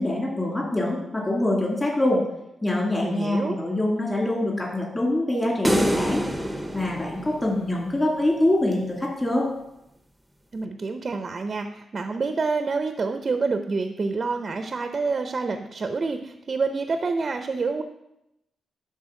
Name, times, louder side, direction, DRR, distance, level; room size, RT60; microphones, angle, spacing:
voice 1, 0.0-2.2 2.6-6.2 6.7-9.5, left 1 dB, 20° left, -2 dB, 2.1 m, -24 dB
voice 2, 3.0-3.6 10.5-17.8, right 4 dB, 45° right, 7 dB, 0.5 m, -27 dB
sound 1, 5.6-8.0, equal, 5° right, 0.6 m, -27 dB
11.5 x 3.9 x 3.7 m, 0.85 s
cardioid pair, 80°, 0 cm